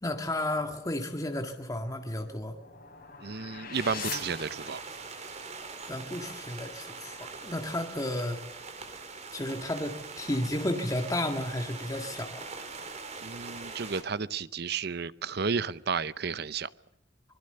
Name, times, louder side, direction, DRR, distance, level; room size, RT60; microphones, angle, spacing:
voice 1, 0.0-2.6 5.9-8.4 9.3-12.5, left 1 dB, 20° left, 4 dB, 1.8 m, -33 dB
sound 1, 1.8-5.2, left 6 dB, 50° left, 6.6 m, -42 dB
voice 2, 3.2-4.8 13.2-16.7, right 5 dB, 60° right, 17 dB, 0.8 m, -32 dB
sound 2, 3.7-14.0, right 4 dB, 40° right, 3.4 m, -42 dB
26.0 x 20.5 x 6.7 m, 0.84 s
head